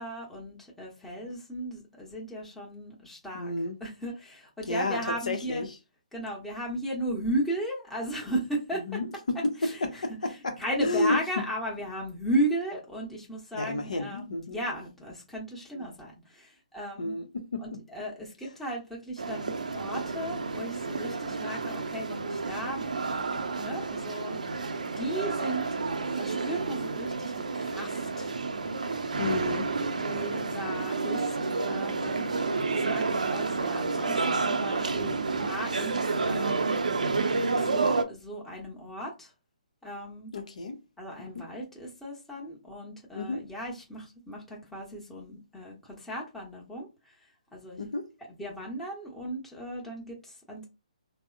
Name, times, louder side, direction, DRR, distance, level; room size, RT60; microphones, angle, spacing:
voice 1, 0.0-3.5 3.8-5.6 6.1-9.0 9.6-17.2 17.6-22.9 23.1-25.6 26.1-28.3 30.0-36.6 37.6-39.3 39.8-40.3 41.0-47.9 48.4-50.7, right 1 dB, 5° left, 0.9 m, -36 dB
voice 2, 3.3-3.8 4.7-5.7 8.9-10.5 10.8-11.2 13.5-14.6 15.7-15.8 17.0-17.3 17.5-17.8 29.2-29.7 40.3-40.8 41.3-41.4 43.2-43.4 47.8-48.0, left 2 dB, 70° left, 0.6 m, -31 dB
sound 1, 19.2-38.0, right 4 dB, 80° right, 0.5 m, -30 dB
3.5 x 2.0 x 2.5 m
figure-of-eight pair, 140°, 4 cm